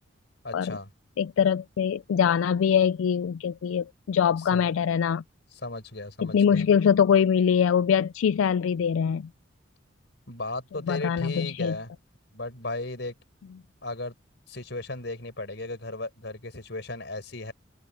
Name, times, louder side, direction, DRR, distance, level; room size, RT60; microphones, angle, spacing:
voice 1, 0.4-0.9 4.5-4.6 5.5-6.7 10.3-11.9 12.3-13.1 13.8-14.1 14.5-17.5, left 2 dB, 60° left, 5.6 m, -35 dB
voice 2, 1.2-5.2 6.2-9.3 10.9-11.8, left 7 dB, 85° left, 0.3 m, -23 dB
head